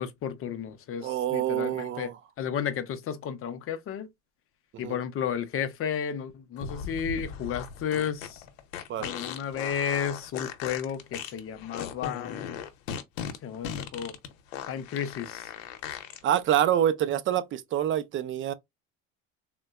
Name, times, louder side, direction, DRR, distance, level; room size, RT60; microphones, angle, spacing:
voice 1, 0.0-2.1 2.4-4.1 4.8-8.4 9.0-12.6 13.4-14.1 14.7-15.5, left 8 dB, 35° left, 0.5 m, -33 dB
voice 2, 1.0-2.1 4.8-5.0 8.9-9.1 16.2-18.5, right 11 dB, 35° right, 0.4 m, -26 dB
sound 1, 6.6-16.2, left 7 dB, 90° left, 0.7 m, -38 dB
3.7 x 2.2 x 2.3 m
supercardioid pair, 115°, 38 cm